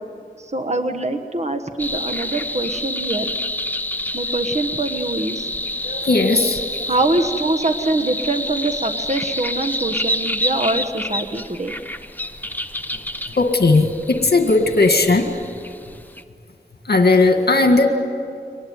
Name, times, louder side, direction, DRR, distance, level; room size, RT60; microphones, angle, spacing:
voice 1, 0.4-3.3 4.1-5.5 6.9-11.7, right 2 dB, 40° right, 7 dB, 1.4 m, -24 dB
sound 1, 1.8-16.2, left 1 dB, 10° left, 0.9 m, -28 dB
voice 2, 5.8-6.9 12.9-15.3 16.8-17.9, left 3 dB, 70° left, 5 dB, 1.8 m, -17 dB
24.0 x 19.5 x 9.4 m, 2.2 s
wide cardioid pair, 65°, 17 cm